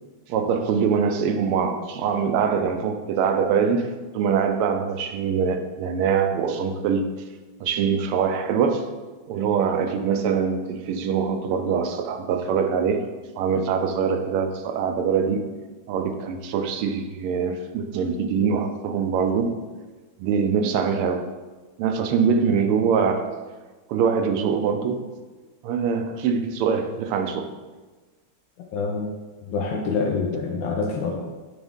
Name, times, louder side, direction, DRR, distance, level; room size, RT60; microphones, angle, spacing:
voice 1, 0.3-7.0 7.6-8.9 9.3-13.1 13.4-15.4 15.9-19.6 20.2-21.3 21.8-23.3 23.9-25.1 25.6-27.5, right 6 dB, 85° right, 6 dB, 1.5 m, -23 dB
voice 2, 28.7-29.1 29.5-31.2, left 4 dB, 70° left, 0 dB, 1.2 m, -26 dB
8.0 x 3.5 x 3.6 m, 1.3 s
omnidirectional pair, 2.4 m